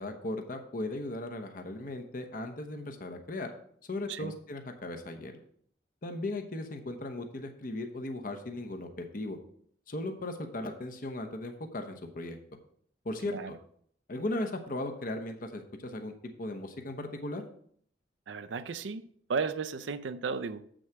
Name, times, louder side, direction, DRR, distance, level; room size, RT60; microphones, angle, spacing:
voice 1, 0.0-3.5 3.9-5.3 6.0-9.4 9.9-12.4 13.0-13.4 14.1-16.1 16.4-17.5, left 2 dB, 50° left, 0.9 m, -37 dB
voice 2, 13.3-13.6 18.3-19.0 19.3-20.6, right 5 dB, 85° right, 0.5 m, -34 dB
7.7 x 6.3 x 4.6 m
head